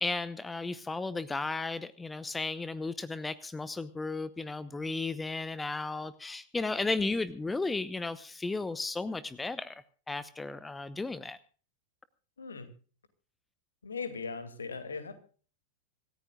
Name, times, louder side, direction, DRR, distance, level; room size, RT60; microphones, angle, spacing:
voice 1, 0.0-11.4, left 3 dB, 10° left, 17 dB, 0.9 m, -34 dB
voice 2, 12.4-12.7 13.8-15.2, left 5 dB, 70° left, 10 dB, 2.5 m, -38 dB
26.5 x 14.5 x 2.4 m, 0.41 s
figure-of-eight pair, 90°, 0 cm